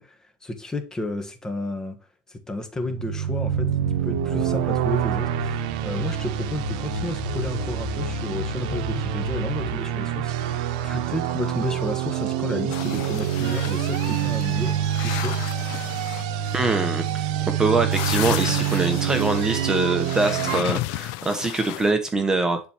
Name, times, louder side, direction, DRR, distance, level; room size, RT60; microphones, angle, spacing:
voice 1, 0.0-2.0 2.3-3.7 4.0-15.4, left 2 dB, 15° left, 1.5 m, -32 dB
sound 1, 2.8-20.6, right 11 dB, 85° right, 0.8 m, -26 dB
sound 2, 3.3-9.8, left 9 dB, 55° left, 1.0 m, -35 dB
sound 3, 12.7-21.9, left 19 dB, 75° left, 0.4 m, -34 dB
voice 2, 16.5-17.2 17.6-22.6, right 3 dB, 15° right, 1.0 m, -23 dB
10.5 x 4.2 x 3.0 m
supercardioid pair, 110°, 4 cm